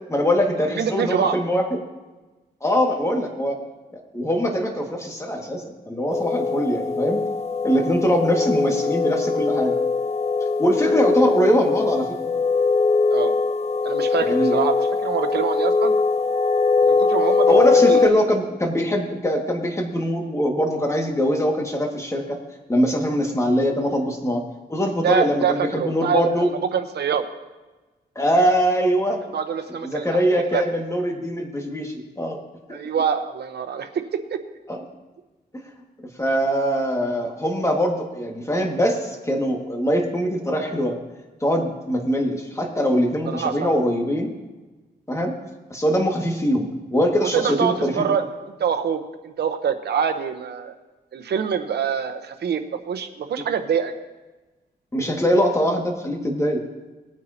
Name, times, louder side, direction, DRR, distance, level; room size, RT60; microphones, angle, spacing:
voice 1, 0.1-1.8 2.6-3.6 4.1-7.2 7.6-9.7 10.6-12.2 14.2-14.6 17.5-22.4 22.7-24.4 24.7-26.5 28.2-29.2 29.8-32.4 34.7-34.8 36.2-41.0 41.4-44.3 45.1-45.3 45.7-47.9 54.9-56.6, equal, 15° left, 1 dB, 2.0 m, -22 dB
voice 2, 0.8-1.4 13.1-13.3 13.8-15.9 16.8-18.2 25.0-26.4 26.7-27.2 29.3-30.6 32.7-34.4 43.3-43.7 47.2-48.3 48.6-50.7 51.1-53.9, right 7 dB, 80° right, 8 dB, 1.0 m, -25 dB
sound 1, 6.1-18.1, left 4 dB, 40° left, 0.9 m, -21 dB
19.0 x 9.4 x 2.9 m, 1.2 s
cardioid pair, 100°, 17 cm